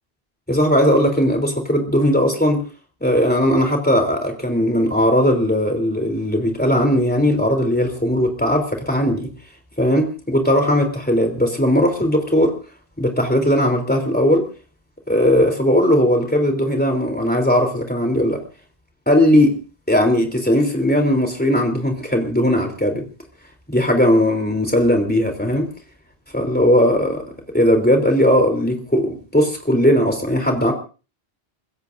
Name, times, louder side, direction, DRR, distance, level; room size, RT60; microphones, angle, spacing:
voice 1, 0.5-2.6 3.0-9.3 9.8-12.5 13.0-14.5 15.1-18.4 19.1-19.5 19.9-23.1 23.7-25.7 26.3-27.2 27.5-30.7, equal, 10° left, 4 dB, 3.4 m, -18 dB
28.5 x 16.0 x 2.7 m, 0.35 s
omnidirectional pair, 1.1 m